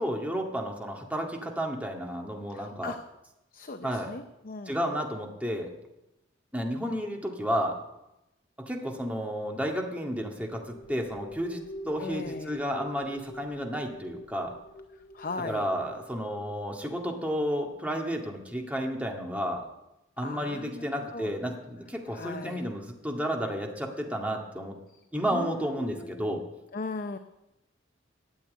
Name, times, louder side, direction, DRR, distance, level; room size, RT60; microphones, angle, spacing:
voice 1, 0.0-3.0 3.8-4.1 4.7-5.7 6.5-7.8 8.6-14.5 15.4-19.6 20.2-24.8 25.1-26.4, equal, 10° right, 1 dB, 1.9 m, -32 dB
voice 2, 2.5-3.0 3.5-5.0 12.0-12.6 15.1-15.6 20.2-21.3 22.1-22.6 24.9-25.0 25.3-26.4 26.7-27.2, left 3 dB, 45° left, 8 dB, 0.7 m, -38 dB
sound 1, 10.4-17.9, left 1 dB, 75° left, 3.8 m, -47 dB
13.0 x 7.8 x 9.5 m, 0.91 s
head